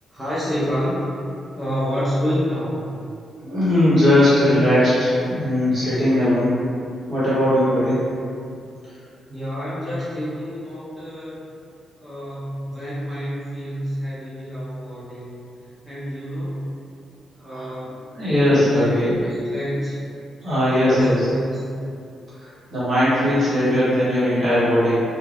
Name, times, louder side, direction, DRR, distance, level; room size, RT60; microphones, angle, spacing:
voice 1, 0.1-1.0 1.5-2.9 9.3-11.4 12.0-15.4 15.8-16.6 17.3-18.0 18.7-20.0 20.7-21.7, equal, 5° right, -11 dB, 0.9 m, -28 dB
voice 2, 3.4-6.6 7.1-8.0 17.4-17.7 18.1-19.2 20.4-21.2 22.4-25.0, left 1 dB, 40° right, -12 dB, 1.0 m, -19 dB
3.2 x 2.2 x 2.5 m, 2.5 s
cardioid pair, 150°, 0 cm